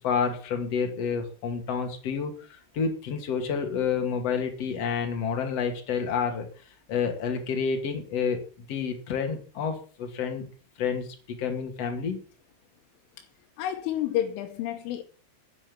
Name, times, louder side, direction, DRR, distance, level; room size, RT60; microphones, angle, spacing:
voice 1, 0.0-6.5 6.9-10.5 10.8-12.2, left 6 dB, 40° left, 2.8 m, -29 dB
voice 2, 13.6-15.0, left 12 dB, 85° left, 3.6 m, -30 dB
10.5 x 9.2 x 8.6 m
omnidirectional pair, 5.5 m